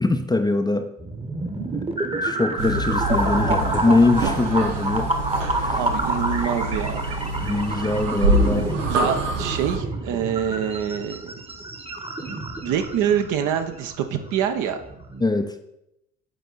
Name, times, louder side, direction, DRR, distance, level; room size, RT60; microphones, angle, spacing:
voice 1, 0.0-0.9 2.2-5.1 5.5-5.8 7.4-8.7 15.2-15.6, left 2 dB, 10° left, 7 dB, 0.5 m, -22 dB
sound 1, 1.0-15.2, right 2 dB, 15° right, 1.0 m, -29 dB
sound 2, 2.6-9.8, right 1 dB, 90° right, 0.8 m, -26 dB
voice 2, 5.8-7.0 8.9-11.3 12.6-14.8, right 8 dB, 55° right, 7 dB, 0.8 m, -25 dB
7.9 x 4.5 x 4.0 m, 0.83 s
figure-of-eight pair, 55°, 36 cm